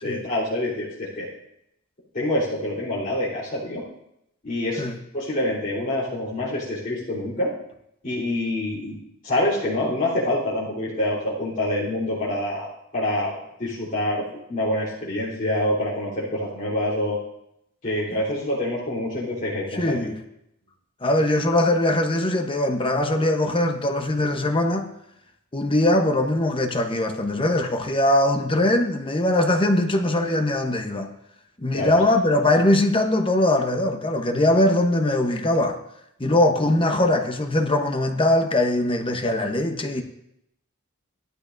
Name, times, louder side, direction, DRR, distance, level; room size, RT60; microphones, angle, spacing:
voice 1, 0.0-1.3 2.1-3.8 4.4-4.8 5.1-7.5 8.0-9.0 9.2-17.2 17.8-20.0 31.7-32.0, left 1 dB, 40° left, 3.5 m, -26 dB
voice 2, 19.7-20.2 21.0-24.9 25.5-31.1 31.6-35.8 36.2-40.0, left 1 dB, 25° left, 0.9 m, -21 dB
16.5 x 12.0 x 2.6 m
head